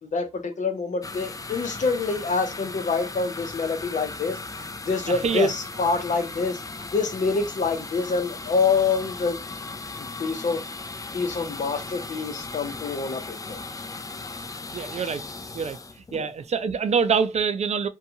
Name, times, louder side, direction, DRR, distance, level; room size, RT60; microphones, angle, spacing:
voice 1, 0.0-4.4 4.8-6.6 6.9-9.4 10.2-10.6 11.1-13.6 16.2-16.3, left 4 dB, 75° left, 0.7 m, -26 dB
sound 1, 1.0-16.7, left 3 dB, 30° left, 0.4 m, -37 dB
voice 2, 5.1-5.5 14.7-15.2 15.5-15.8 16.1-17.9, right 6 dB, 60° right, 0.4 m, -25 dB
2.6 x 2.3 x 2.7 m
cardioid pair, 70°, 13 cm